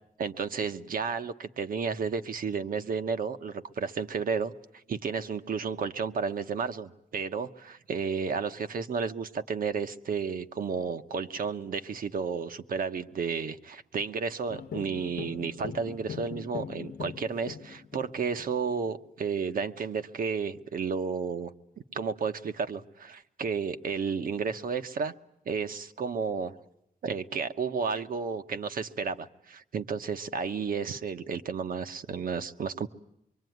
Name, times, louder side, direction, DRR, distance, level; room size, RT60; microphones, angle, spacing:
voice 1, 0.2-4.5 4.9-21.5 21.9-25.1 25.4-26.6 27.0-32.9, right 5 dB, 65° right, 9 dB, 1.2 m, -32 dB
sound 1, 14.5-18.9, left 7 dB, 60° left, 1.0 m, -41 dB
25.0 x 24.0 x 9.4 m, 0.80 s
wide cardioid pair, 150°, 16 cm